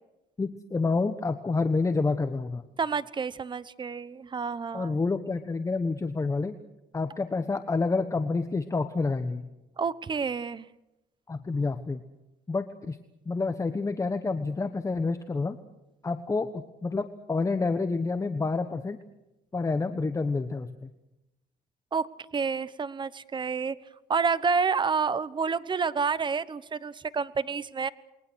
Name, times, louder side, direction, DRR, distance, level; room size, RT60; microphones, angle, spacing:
voice 1, 0.4-2.6 4.7-6.5 6.9-9.5 11.3-12.0 12.5-13.0 13.2-15.6 16.0-19.0 19.5-20.9, left 3 dB, 20° left, 9 dB, 1.2 m, -28 dB
voice 2, 2.8-4.9 9.8-10.7 21.9-22.1 22.3-23.7 24.1-27.9, right 5 dB, 30° right, 16 dB, 1.1 m, -29 dB
28.5 x 22.0 x 6.4 m, 0.94 s
cardioid pair, 110°, 17 cm